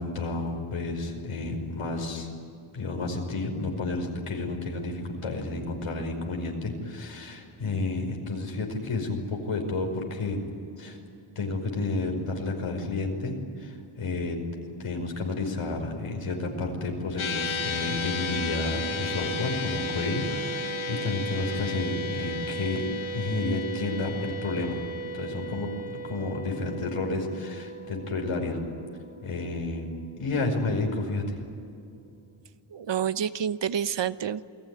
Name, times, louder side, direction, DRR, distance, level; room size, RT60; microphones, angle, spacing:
voice 1, 0.0-2.3 2.7-10.4 10.8-11.0 11.4-14.4 14.8-22.9 23.1-24.8 25.1-28.6 29.2-29.9 30.2-31.4, left 3 dB, 90° left, 2 dB, 5.3 m, -31 dB
sound 1, 17.2-29.7, left 1 dB, 70° left, 1.7 m, -34 dB
voice 2, 32.7-34.4, right 8 dB, 60° right, 13 dB, 1.0 m, -28 dB
28.5 x 20.5 x 9.7 m, 2.5 s
wide cardioid pair, 115°, 50 cm